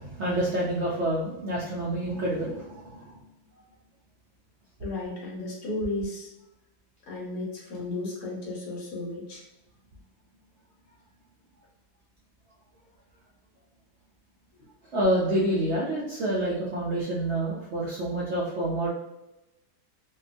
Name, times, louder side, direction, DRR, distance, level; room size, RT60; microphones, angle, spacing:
voice 1, 0.0-3.1 14.9-18.9, right 1 dB, 70° right, -5 dB, 0.6 m, -28 dB
voice 2, 4.8-6.3 7.1-9.5, left 2 dB, 70° left, -3 dB, 1.2 m, -34 dB
2.7 x 2.2 x 2.5 m, 0.95 s
omnidirectional pair, 1.6 m